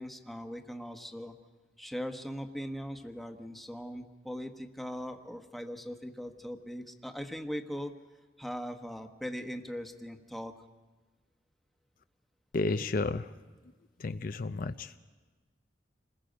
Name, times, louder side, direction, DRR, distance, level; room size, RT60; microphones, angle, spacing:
voice 1, 0.0-1.3 1.8-7.9 8.4-10.5, equal, ahead, 5 dB, 1.1 m, -40 dB
voice 2, 12.5-13.3 14.0-14.9, left 3 dB, 55° left, 10 dB, 0.5 m, -32 dB
28.5 x 20.5 x 5.1 m, 1.3 s
head